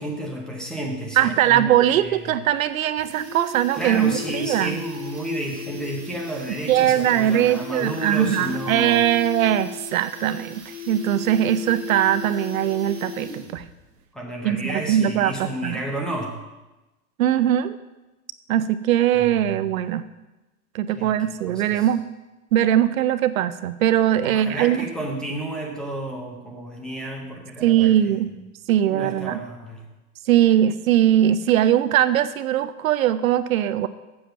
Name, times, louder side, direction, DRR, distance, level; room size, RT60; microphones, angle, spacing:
voice 1, 0.0-2.4 3.7-9.1 14.1-16.4 19.1-19.6 21.0-21.2 21.5-21.9 24.2-28.4 28.8-29.8, right 1 dB, ahead, -1 dB, 0.7 m, -32 dB
voice 2, 1.2-4.8 6.7-13.6 14.4-15.8 17.2-17.8 18.5-20.0 20.7-22.0 22.5-24.9 27.6-28.3 28.7-29.4 30.3-33.9, right 11 dB, 65° right, 14 dB, 0.6 m, -20 dB
sound 1, 2.1-2.2 2.5-2.6 2.8-13.7 14.0-14.1, left 5 dB, 35° right, 2.3 m, -36 dB
7.3 x 7.1 x 6.5 m, 1.1 s
supercardioid pair, 155°, 45 cm